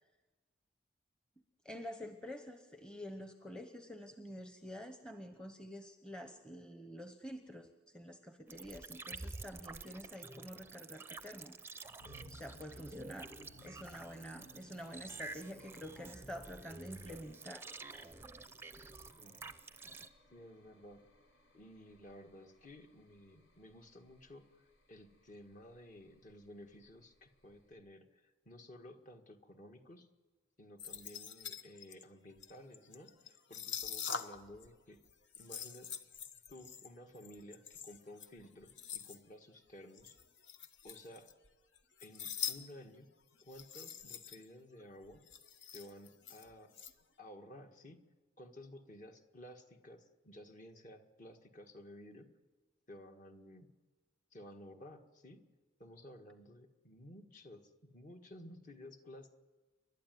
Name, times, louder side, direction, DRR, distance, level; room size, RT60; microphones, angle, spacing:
voice 1, 1.6-11.6 12.3-13.3 13.6-17.7, equal, 5° left, 6 dB, 1.0 m, -48 dB
sound 1, 8.5-20.1, right 3 dB, 10° right, 0.6 m, -50 dB
sound 2, 12.0-27.7, equal, 90° left, 4.8 m, -62 dB
voice 2, 20.3-21.0 21.5-30.1 30.6-35.0 35.4-35.9 36.5-40.2 40.8-41.3 42.0-43.1 43.4-45.2 45.7-46.7 47.2-48.0 48.4-52.3 52.9-53.7 54.3-55.4 55.8-59.3, left 1 dB, 40° left, 5 dB, 1.7 m, -54 dB
sound 3, 30.8-34.7 35.0-39.2 40.0-41.5 41.8-42.6 42.9-43.0 43.4-44.5 44.8-44.9 45.1-46.9, left 7 dB, 65° left, 1.1 m, -44 dB
29.5 x 12.0 x 9.3 m, 1.3 s
head